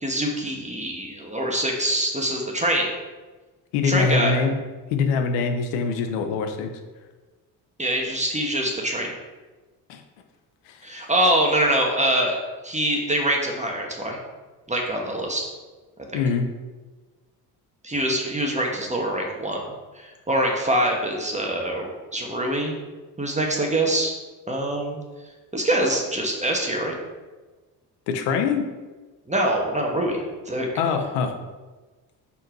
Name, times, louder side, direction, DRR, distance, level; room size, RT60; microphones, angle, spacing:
voice 1, 0.0-2.9 3.8-4.3 7.8-9.1 10.8-14.2 14.7-15.5 16.1-16.2 17.8-19.6 19.9-22.8 23.2-24.1 24.5-25.0 25.5-27.0 29.3-30.2 30.5-30.7, right 1 dB, 15° right, 0 dB, 1.4 m, -24 dB
voice 2, 3.7-4.5 4.9-6.7 9.9-10.0 10.7-10.8 16.1-16.5 28.1-28.7 30.8-31.3, left 5 dB, 85° left, 6 dB, 0.9 m, -23 dB
5.6 x 4.5 x 4.6 m, 1.3 s
supercardioid pair, 65°, 41 cm